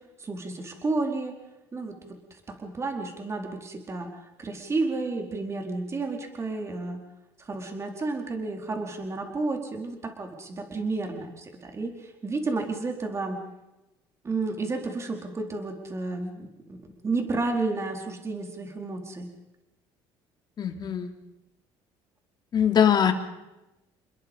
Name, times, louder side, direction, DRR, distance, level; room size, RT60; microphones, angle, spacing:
voice 1, 0.2-1.4 1.7-7.0 7.4-13.4 14.2-19.3, right 3 dB, 25° right, 3 dB, 4.5 m, -31 dB
voice 2, 20.6-21.1 22.5-23.1, left 8 dB, 45° left, 5 dB, 3.2 m, -22 dB
29.0 x 21.0 x 5.6 m, 0.96 s
cardioid pair, 105°, 10 cm